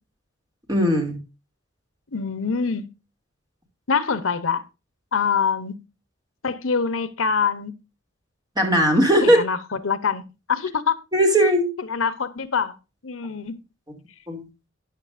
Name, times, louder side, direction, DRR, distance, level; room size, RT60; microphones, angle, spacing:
voice 1, 0.7-1.2 8.6-9.4 11.1-11.7 14.3-14.5, equal, 20° right, 2.9 m, -18 dB
voice 2, 2.1-2.9 3.9-4.6 5.1-5.8 6.4-7.7 9.2-9.6 9.8-10.2 10.5-11.0 11.9-12.8 13.0-13.6, left 5 dB, 80° left, 1.0 m, -24 dB
13.0 x 9.3 x 2.6 m
head